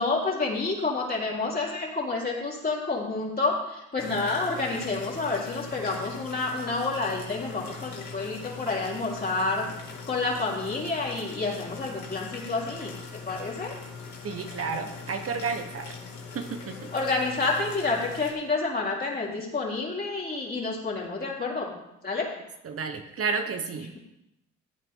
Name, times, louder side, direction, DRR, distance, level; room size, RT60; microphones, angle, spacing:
voice 1, 0.0-9.7 10.1-13.8 16.9-21.8 22.0-22.3, left 3 dB, 30° left, -4 dB, 4.4 m, -29 dB
sound 1, 4.0-18.3, left 5 dB, 70° left, 2.7 m, -41 dB
voice 2, 14.2-16.0 16.3-16.9 22.6-23.9, right 5 dB, 50° right, 5 dB, 1.3 m, -31 dB
16.0 x 9.4 x 3.9 m, 0.86 s
cardioid pair, 90°, 30 cm